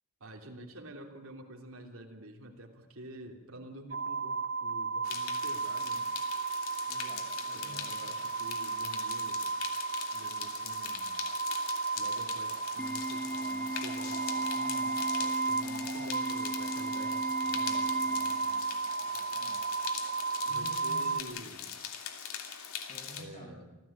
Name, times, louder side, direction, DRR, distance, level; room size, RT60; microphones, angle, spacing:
voice 1, 0.2-6.1 7.5-9.5 10.1-11.2 11.9-18.4 20.5-21.7 23.2-23.8, right 1 dB, 70° right, 2 dB, 3.1 m, -48 dB
sound 1, 3.9-21.2, right 4 dB, 50° right, 0.8 m, -34 dB
sound 2, 5.0-23.2, left 8 dB, 70° left, 2.9 m, -42 dB
voice 2, 6.9-7.9 18.1-18.7 19.0-19.7 20.5-21.2 22.9-23.6, left 1 dB, 35° left, 0 dB, 7.1 m, -50 dB
Organ, 12.8-18.8, right 1 dB, 5° left, 0.9 m, -38 dB
27.0 x 15.0 x 8.7 m, 1.1 s
head